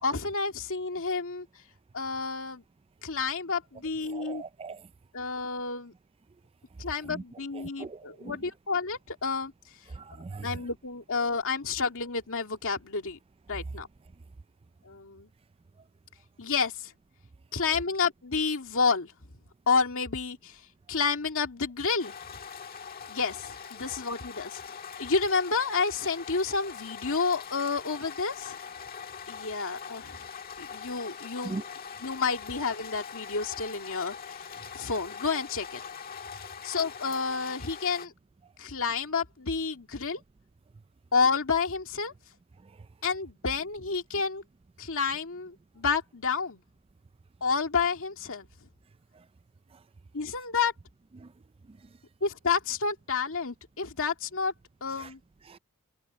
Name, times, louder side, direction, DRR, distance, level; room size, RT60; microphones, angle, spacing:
voice 1, 0.0-1.5 1.9-2.6 3.0-4.4 5.1-5.9 6.8-9.5 10.4-13.2 13.5-13.9 14.8-15.3 16.4-16.9 17.5-19.1 19.7-20.6 20.9-22.1 23.1-24.6 25.0-28.6 29.3-30.3 30.6-31.6 32.0-34.5 34.7-35.8 36.6-38.1 38.6-40.2 41.1-42.1 43.0-44.4 44.8-46.6 47.4-48.7 50.1-50.7 52.2-54.5 54.8-55.2, left 5 dB, 65° left, 2.3 m, -30 dB
voice 2, 4.1-4.8 7.1-7.2 7.5-8.4 9.9-10.5 31.4-31.6 51.2-51.3 51.7-51.8 55.0-55.1 55.5-55.6, right 3 dB, 25° right, 0.4 m, -40 dB
sound 1, 22.0-38.1, left 7 dB, 45° left, 1.6 m, -42 dB
head